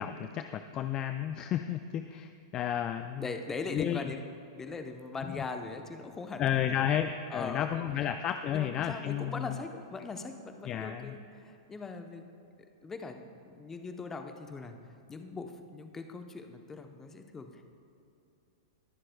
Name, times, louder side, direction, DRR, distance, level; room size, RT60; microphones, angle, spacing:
voice 1, 0.0-3.2 3.7-4.0 5.4-5.5 6.4-9.5 10.7-11.2, left 10 dB, 30° left, 8 dB, 0.3 m, -32 dB
voice 2, 3.2-4.3 4.6-6.8 7.3-8.1 8.5-12.3 12.8-14.8 15.1-17.6, left 4 dB, 15° left, 6 dB, 0.8 m, -40 dB
21.0 x 7.5 x 2.3 m, 2.7 s
hypercardioid pair, 110°, 2 cm